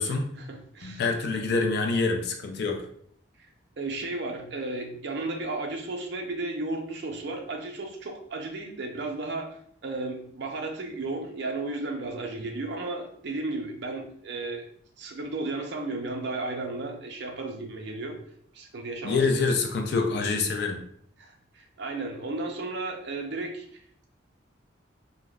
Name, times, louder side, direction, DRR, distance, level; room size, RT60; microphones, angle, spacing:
voice 1, 0.1-1.0 3.8-9.5 9.8-14.6 15.0-18.2 18.5-19.2 21.2-23.7, right 2 dB, 60° right, 2 dB, 0.5 m, -34 dB
voice 2, 0.8-2.9 19.0-20.8, left 4 dB, 55° left, 4 dB, 0.3 m, -26 dB
3.3 x 2.1 x 2.3 m, 0.65 s
head